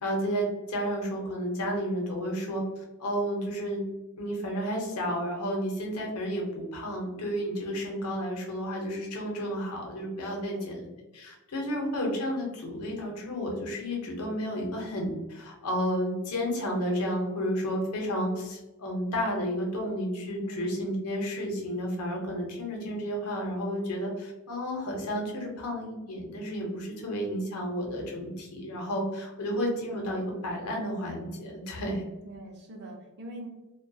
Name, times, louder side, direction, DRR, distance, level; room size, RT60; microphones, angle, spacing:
voice 1, 0.0-2.6 3.0-3.8 4.2-10.8 11.1-32.0, equal, 85° left, 0 dB, 0.7 m, -32 dB
voice 2, 10.4-10.9 20.4-20.7 32.2-33.5, equal, 50° right, 0 dB, 0.5 m, -44 dB
2.2 x 2.2 x 2.6 m, 1.0 s
head